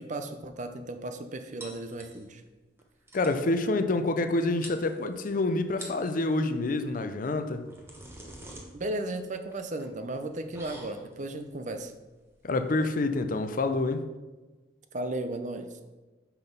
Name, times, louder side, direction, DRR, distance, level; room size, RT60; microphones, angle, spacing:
voice 1, 0.0-2.4 8.7-11.9 14.9-15.7, right 2 dB, 40° right, 8 dB, 0.6 m, -35 dB
sound 1, 1.6-2.5 2.8-2.9 3.1-3.4 4.3-4.4 4.6-5.3 5.7-6.1 7.3-13.9, right 1 dB, 15° right, 1.1 m, -48 dB
voice 2, 3.1-7.7 12.4-14.1, left 2 dB, 45° left, 8 dB, 0.5 m, -27 dB
6.0 x 5.7 x 5.3 m, 1.2 s
head